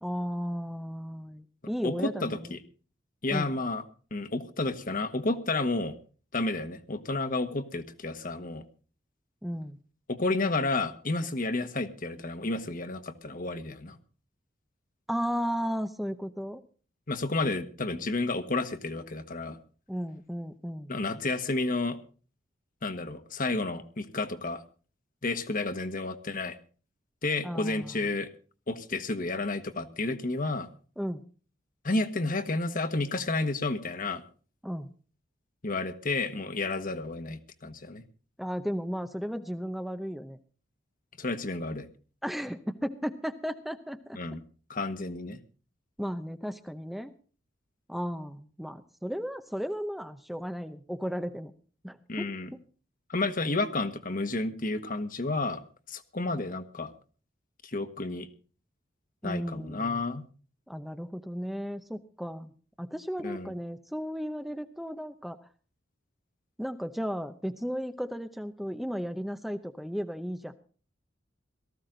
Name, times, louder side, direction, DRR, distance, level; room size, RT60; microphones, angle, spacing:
voice 1, 0.0-2.5 3.3-3.5 9.4-9.8 15.1-16.6 19.9-20.9 27.4-28.1 31.0-31.2 34.6-34.9 38.4-40.4 42.2-44.2 46.0-47.1 47.9-51.5 51.8-52.2 52.5-52.6 59.2-60.0 60.7-62.5 62.8-65.4 66.6-70.5, equal, ahead, 8 dB, 0.7 m, -35 dB
voice 2, 1.8-2.6 3.2-3.8 4.1-5.9 6.3-8.6 10.1-14.0 17.1-19.6 20.9-22.0 22.8-24.6 25.2-26.6 27.2-28.3 28.7-30.7 31.8-34.2 35.6-38.0 41.2-41.9 44.1-44.4 44.7-45.4 52.1-52.5 53.1-55.6 55.9-56.9 57.6-58.3 59.2-60.3 63.2-63.5, left 2 dB, 45° left, 8 dB, 1.5 m, -31 dB
18.0 x 14.5 x 3.9 m, 0.39 s
head